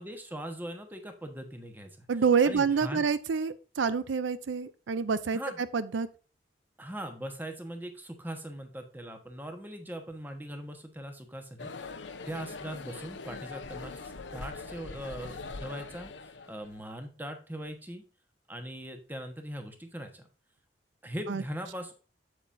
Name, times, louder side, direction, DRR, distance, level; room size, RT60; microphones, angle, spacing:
voice 1, 0.0-2.1 2.4-3.0 5.3-5.6 6.8-18.0 18.5-20.2 21.0-21.9, equal, 10° right, 5 dB, 1.2 m, -40 dB
voice 2, 2.1-6.1 21.3-21.4, right 5 dB, 90° right, 14 dB, 0.5 m, -27 dB
sound 1, 11.6-16.8, left 4 dB, 80° left, 0.7 m, -42 dB
8.0 x 7.4 x 2.6 m, 0.35 s
head